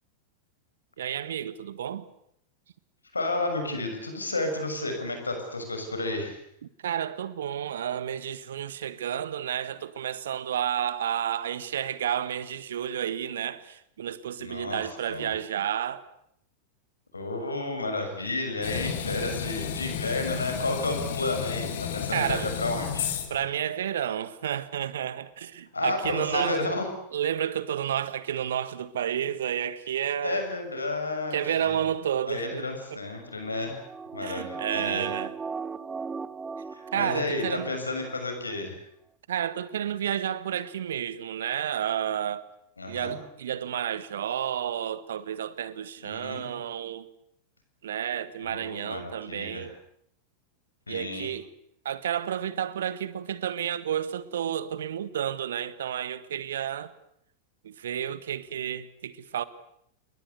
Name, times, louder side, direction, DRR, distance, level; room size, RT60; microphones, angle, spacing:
voice 1, 1.0-2.1 6.8-16.1 22.1-22.5 23.3-26.6 27.1-30.4 31.3-32.6 32.9-33.0 34.2-35.3 36.9-37.8 39.3-42.5 42.9-47.1 47.8-49.7 50.9-51.5 51.8-56.9 57.6-59.4, right 9 dB, 60° right, 1.4 m, -31 dB
voice 2, 3.1-6.4 14.4-14.8 15.1-15.3 17.1-23.1 25.7-26.9 30.2-31.8 32.3-33.7 34.1-35.1 36.7-38.8 42.8-43.2 46.0-46.6 48.4-49.6 50.9-51.3, left 2 dB, 80° left, 6.8 m, -31 dB
sound 1, 18.6-23.5, left 8 dB, 55° left, 3.2 m, -32 dB
sound 2, 33.4-38.2 38.5-38.6, right 5 dB, 15° right, 1.1 m, -37 dB
28.5 x 22.0 x 8.2 m
figure-of-eight pair, 90°, 0 cm